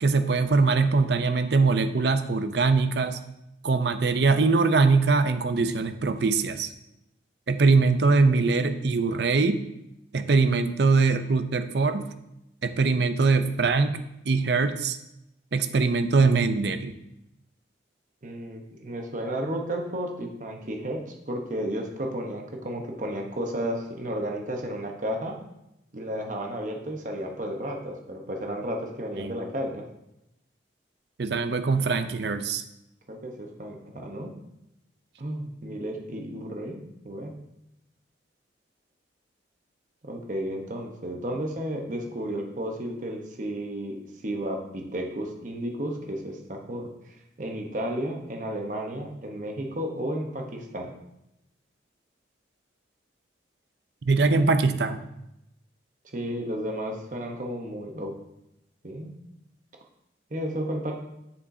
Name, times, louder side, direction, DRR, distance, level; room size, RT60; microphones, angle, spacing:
voice 1, 0.0-3.2 3.6-6.7 7.5-9.6 10.1-12.1 12.6-14.0 14.2-15.0 15.5-16.9 29.2-29.3 31.2-32.6 54.1-55.0, right 4 dB, 60° right, 10 dB, 0.5 m, -22 dB
voice 2, 18.2-25.4 25.9-29.8 33.1-34.3 35.2-37.3 40.0-43.9 44.2-50.9 56.0-58.1 58.8-59.1 60.3-60.9, equal, 40° right, 2 dB, 0.9 m, -33 dB
7.2 x 7.1 x 2.7 m, 0.85 s
head